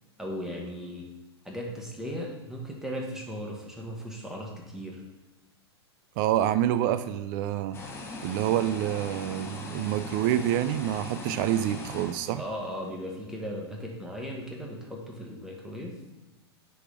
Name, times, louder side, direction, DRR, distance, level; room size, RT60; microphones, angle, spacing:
voice 1, 0.2-1.0 1.4-5.0 12.4-16.0, equal, 5° right, -1 dB, 1.5 m, -37 dB
voice 2, 6.2-7.8 8.2-12.4, right 12 dB, 45° right, 13 dB, 0.4 m, -27 dB
sound 1, 7.7-12.9, left 3 dB, 20° left, 1.0 m, -40 dB
9.3 x 4.2 x 3.4 m, 1.1 s
hypercardioid pair, 105°, 14 cm